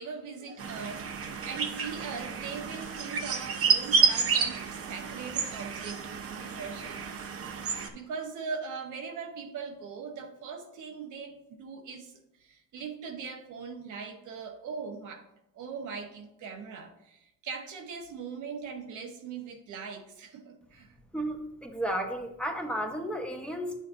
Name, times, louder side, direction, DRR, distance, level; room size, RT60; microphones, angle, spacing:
voice 1, 0.0-6.0 6.3-7.1 7.9-12.1 12.4-15.2 15.5-20.9, right 5 dB, 80° right, 3 dB, 1.2 m, -40 dB
sound 1, 0.6-7.9, right 5 dB, 50° right, 0.9 m, -30 dB
voice 2, 21.1-23.8, equal, 5° left, 2 dB, 1.1 m, -33 dB
9.3 x 6.4 x 2.6 m, 0.84 s
cardioid pair, 90°, 30 cm